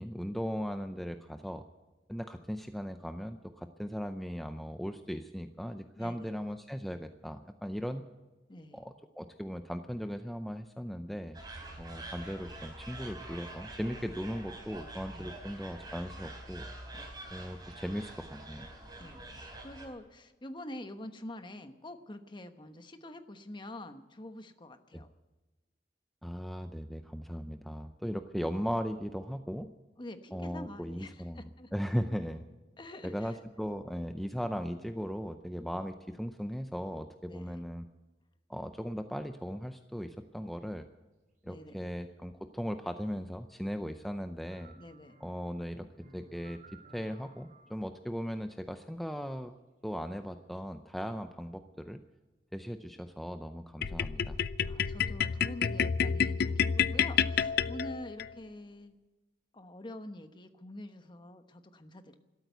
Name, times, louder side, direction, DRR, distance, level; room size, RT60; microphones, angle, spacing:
voice 1, 0.0-1.6 2.1-8.0 8.7-11.4 11.8-16.6 17.3-18.7 24.9-25.0 26.2-29.7 30.3-31.4 31.7-32.5 33.0-37.9 38.5-40.9 41.4-44.7 45.2-45.9 46.1-46.6 46.9-49.5 49.8-52.0 52.5-54.4, equal, ahead, 7 dB, 0.5 m, -38 dB
voice 2, 6.0-6.3 8.5-8.8 11.6-11.7 15.1-15.3 16.9-17.1 19.0-25.1 30.0-31.7 32.8-33.4 34.3-34.4 37.2-37.6 41.4-41.9 44.7-45.2 54.6-58.9 59.5-62.2, left 1 dB, 25° left, 8 dB, 1.1 m, -46 dB
sound 1, 11.3-19.9, right 2 dB, 25° right, 3.8 m, -46 dB
sound 2, 44.5-47.7 50.6-50.7, right 3 dB, 50° right, 3.9 m, -58 dB
sound 3, 53.8-58.3, left 7 dB, 60° left, 0.5 m, -29 dB
13.5 x 12.5 x 8.1 m, 1.1 s
head